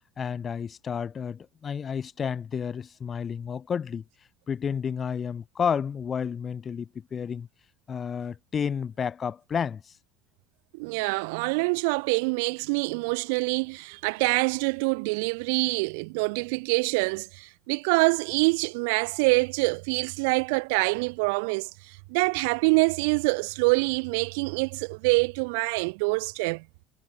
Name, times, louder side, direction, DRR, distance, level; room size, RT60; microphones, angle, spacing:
voice 1, 0.2-4.0 4.5-7.5 7.9-9.9, left 7 dB, 20° left, 3.1 m, -31 dB
voice 2, 10.7-26.6, right 31 dB, 75° right, 4.1 m, -25 dB
cardioid pair, 180°, 0 cm